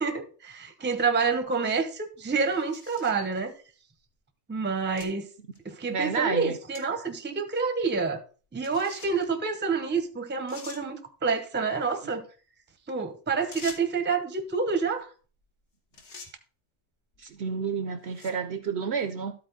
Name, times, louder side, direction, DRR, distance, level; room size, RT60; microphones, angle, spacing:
voice 1, 0.0-3.5 4.5-5.3 5.6-8.2 8.5-12.2 12.9-15.1, right 4 dB, 10° right, 0.6 m, -28 dB
sound 1, 1.4-1.5 2.3-3.2 4.0-4.1 5.0-5.1 5.6-5.7 6.7-6.9 7.2-7.3 8.6-9.3 10.0-10.1 10.5-10.8 13.5-14.0 15.4-15.6 15.9-16.3 17.1-17.4 18.0-18.5, left 4 dB, 60° left, 1.5 m, -45 dB
voice 2, 5.9-6.6 17.2-19.3, right 6 dB, 60° right, 0.8 m, -30 dB
12.5 x 4.3 x 3.9 m
omnidirectional pair, 1.4 m